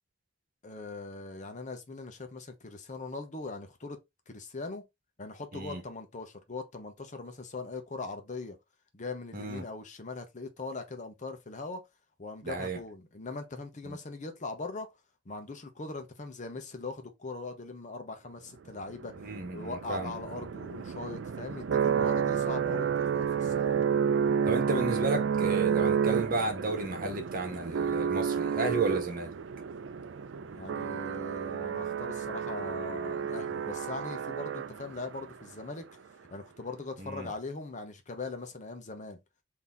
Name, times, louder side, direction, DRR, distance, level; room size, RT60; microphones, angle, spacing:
voice 1, 0.6-4.0 4.3-4.9 5.2-8.6 8.9-11.8 12.2-14.9 15.3-19.1 19.5-23.7 30.5-35.9 36.3-39.2, left 3 dB, 40° left, 0.8 m, -40 dB
voice 2, 9.3-9.6 12.4-12.8 13.9-14.0 19.2-20.1 20.4-20.5 24.4-29.3 37.0-37.3, right 3 dB, 50° right, 1.1 m, -33 dB
sound 1, 18.9-35.1, right 7 dB, 75° right, 0.4 m, -30 dB
3.9 x 2.8 x 3.4 m
head